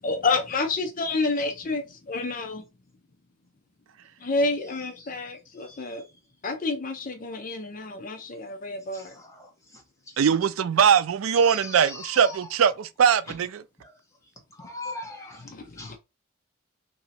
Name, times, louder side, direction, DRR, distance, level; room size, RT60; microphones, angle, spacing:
voice 1, 0.0-2.6 4.2-6.0 6.4-9.1 15.6-15.7, left 3 dB, 40° left, 0.6 m, -29 dB
voice 2, 4.6-6.1 8.9-10.3 11.3-12.5 13.3-13.4 13.8-16.0, left 2 dB, 15° left, 1.1 m, -43 dB
voice 3, 10.2-13.5, right 7 dB, 85° right, 0.4 m, -21 dB
3.0 x 2.7 x 4.1 m
head